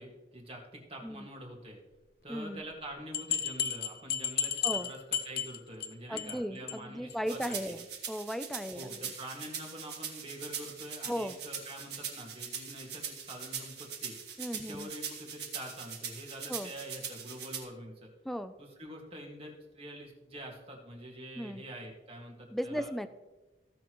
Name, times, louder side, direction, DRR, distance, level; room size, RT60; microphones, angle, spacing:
voice 1, 0.0-1.8 2.2-7.8 8.7-14.2 14.6-18.1 18.6-22.9, right 1 dB, 30° right, 0 dB, 1.9 m, -46 dB
voice 2, 2.3-2.6 4.6-4.9 6.1-9.1 11.1-11.4 14.4-14.9 16.5-16.7 18.2-18.5 21.4-21.6 22.5-23.1, equal, ahead, 11 dB, 0.4 m, -36 dB
sound 1, 2.7-2.8 3.1-5.9 6.2-6.4 6.7-6.8 7.1-7.2 7.5-7.6, left 9 dB, 55° left, 0.6 m, -33 dB
sound 2, 7.3-17.6, right 7 dB, 60° right, 1.8 m, -41 dB
16.0 x 6.5 x 3.1 m, 1.1 s
head